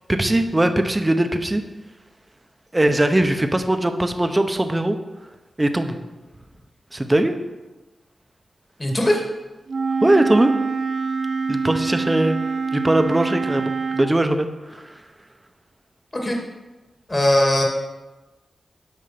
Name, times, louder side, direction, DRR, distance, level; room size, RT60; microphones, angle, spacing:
voice 1, 0.1-1.6 2.7-5.0 5.6-6.0 6.9-7.4 10.0-10.5 11.5-12.4 12.7-14.9, right 1 dB, 20° right, 7 dB, 0.8 m, -20 dB
voice 2, 8.8-9.2 16.2-16.4 17.1-17.6, left 1 dB, 25° left, 0 dB, 2.1 m, -19 dB
Wind instrument woodwind instrument, 9.7-14.1, right 4 dB, 60° right, 0.4 m, -25 dB
8.4 x 5.6 x 5.8 m, 1.1 s
wide cardioid pair, 80°, 0 cm